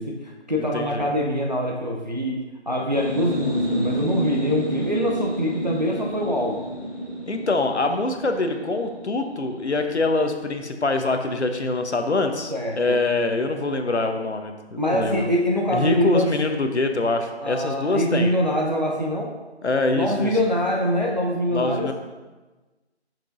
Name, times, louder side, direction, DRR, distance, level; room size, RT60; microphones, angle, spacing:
voice 1, 0.0-2.4 2.7-6.7 12.5-13.0 14.8-16.3 17.4-19.4 19.9-21.9, equal, 40° right, -2 dB, 0.7 m, -24 dB
voice 2, 0.6-1.1 7.3-15.3 15.7-18.3 19.6-20.3 21.5-21.9, left 3 dB, 75° left, 5 dB, 1.0 m, -24 dB
sound 1, 2.8-10.3, equal, 5° left, 1.5 m, -30 dB
10.5 x 6.0 x 2.6 m, 1.2 s
figure-of-eight pair, 175°, 34 cm